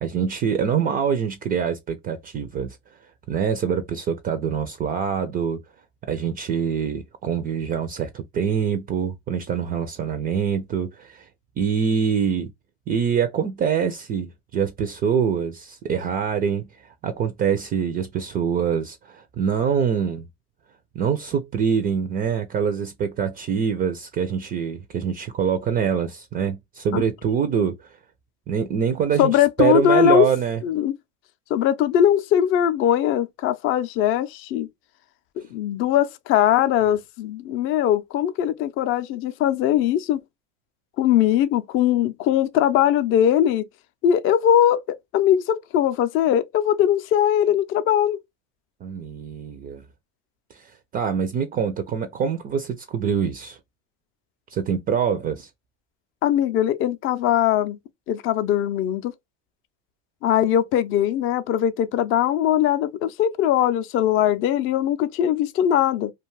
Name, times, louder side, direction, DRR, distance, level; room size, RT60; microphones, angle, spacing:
voice 1, 0.0-5.6 6.1-11.3 11.6-12.5 12.9-20.3 21.0-28.0 28.5-30.6 48.8-49.8 50.5-53.6 54.5-55.5, right 7 dB, 30° right, 0.3 m, -25 dB
voice 2, 29.2-30.3 30.6-31.0 31.5-34.7 35.5-40.2 41.0-43.7 44.0-48.2 56.2-57.8 58.1-59.1 60.2-66.1, left 10 dB, 45° left, 0.4 m, -20 dB
2.4 x 2.2 x 3.0 m
supercardioid pair, 125°, 31 cm